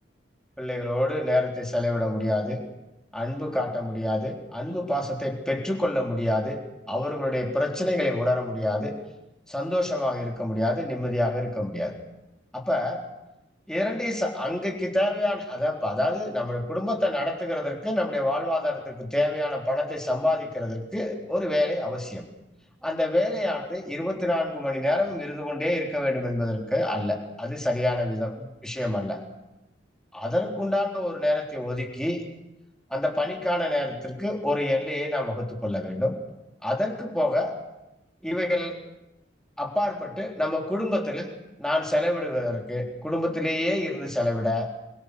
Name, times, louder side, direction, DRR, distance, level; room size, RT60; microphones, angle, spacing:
voice 1, 0.6-2.6 3.1-6.6 6.9-8.9 9.5-11.9 12.5-13.0 13.7-22.3 22.8-29.2 30.1-32.2 32.9-36.1 36.6-37.5 38.2-38.8 39.6-41.3 41.6-44.7, left 1 dB, 5° left, 0 dB, 3.8 m, -27 dB
28.0 x 23.5 x 6.7 m, 0.93 s
head